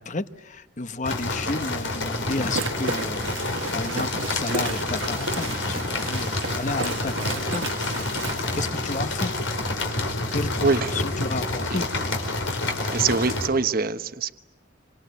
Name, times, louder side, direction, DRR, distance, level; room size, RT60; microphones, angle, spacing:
voice 1, 0.0-8.1 8.5-9.3 10.3-11.9, left 2 dB, 40° left, 1.0 m, -32 dB
sound 1, 1.0-13.5, left 2 dB, 80° left, 5.0 m, -28 dB
sound 2, 2.3-8.7, right 4 dB, 80° right, 1.4 m, -33 dB
voice 2, 10.6-11.1 11.7-11.8 12.9-14.3, right 4 dB, 50° right, 1.0 m, -24 dB
28.0 x 26.0 x 8.2 m
head